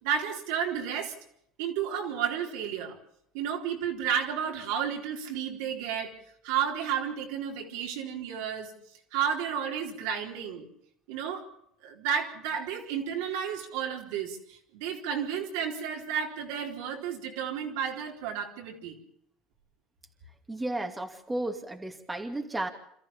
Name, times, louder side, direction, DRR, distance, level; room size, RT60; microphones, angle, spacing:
voice 1, 0.0-1.1 1.6-3.0 3.3-6.1 6.4-8.7 9.1-10.6 11.1-11.5 11.8-19.0, right 8 dB, 80° right, 1 dB, 4.1 m, -32 dB
voice 2, 20.5-22.7, right 1 dB, 10° right, 4 dB, 2.5 m, -33 dB
27.0 x 14.0 x 7.2 m, 0.70 s
supercardioid pair, 100°, 0 cm